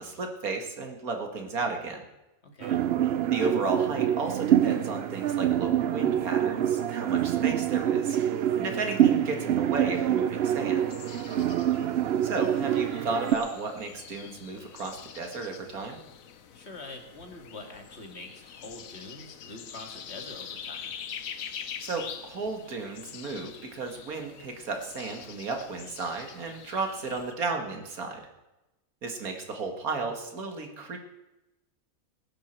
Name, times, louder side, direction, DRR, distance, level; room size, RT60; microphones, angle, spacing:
voice 1, 0.0-2.1 3.3-8.2 8.5-10.8 12.2-16.0 21.8-28.2 29.0-31.0, right 3 dB, 90° right, 4 dB, 2.3 m, -34 dB
voice 2, 2.4-2.8 11.3-11.5 16.5-20.9, left 2 dB, 50° left, 4 dB, 2.2 m, -45 dB
sound 1, 2.6-13.4, right 10 dB, 60° right, 0.7 m, -26 dB
sound 2, 10.8-27.3, left 8 dB, 70° left, 1.3 m, -44 dB
19.5 x 10.5 x 4.4 m, 0.99 s
omnidirectional pair, 1.5 m